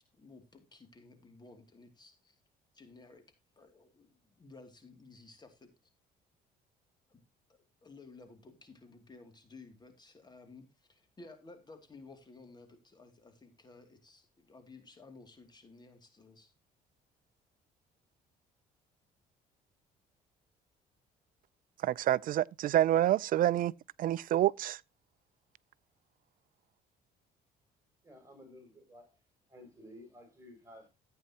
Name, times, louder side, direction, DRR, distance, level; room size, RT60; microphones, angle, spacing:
voice 1, 0.0-2.4 2.7-3.2 3.6-5.7 7.1-7.2 7.8-16.5, left 3 dB, 25° left, 2.6 m, -55 dB
voice 2, 21.8-23.7 24.0-24.8, right 12 dB, 55° right, 0.5 m, -27 dB
voice 3, 28.0-29.2 29.5-30.9, left 1 dB, 15° right, 7.6 m, -54 dB
14.5 x 8.7 x 2.9 m
cardioid pair, 110°, 17 cm